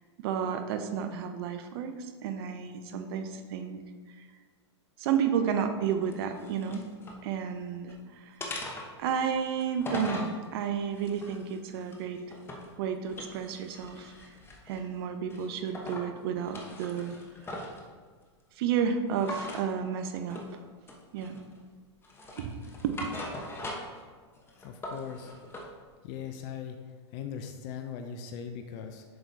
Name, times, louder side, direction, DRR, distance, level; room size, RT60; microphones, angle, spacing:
voice 1, 0.2-3.8 5.0-6.8 7.2-8.0 8.3-8.4 9.0-12.2 12.8-14.1 14.7-17.2 18.6-20.4 21.1-21.4 22.4-22.6 22.8-23.0, right 7 dB, 55° right, 7 dB, 0.7 m, -31 dB
sound 1, 6.0-7.2 7.6-8.0 8.4-10.3 10.9-12.7 13.1-14.9 15.3-16.1 16.4-17.8 19.2-19.7 20.3-20.5 20.9-21.6 22.0-24.0 24.4-25.7, left 1 dB, 15° left, 1.0 m, -41 dB
voice 2, 24.6-25.3 26.0-26.8 27.1-29.0, left 7 dB, 45° left, 6 dB, 0.5 m, -39 dB
7.7 x 6.0 x 2.7 m, 1.5 s
hypercardioid pair, 105°, 15 cm